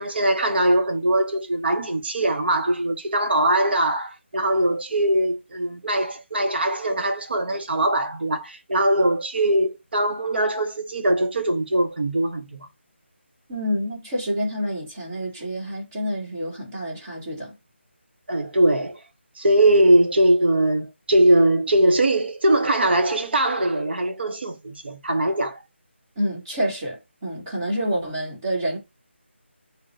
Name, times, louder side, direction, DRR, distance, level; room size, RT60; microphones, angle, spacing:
voice 1, 0.0-12.7 18.3-19.0 19.4-25.6, right 1 dB, 55° right, 0.8 m, -21 dB
voice 2, 13.5-17.5 26.2-28.8, equal, 20° right, 1.3 m, -28 dB
3.8 x 2.1 x 4.0 m
figure-of-eight pair, 175°, 7 cm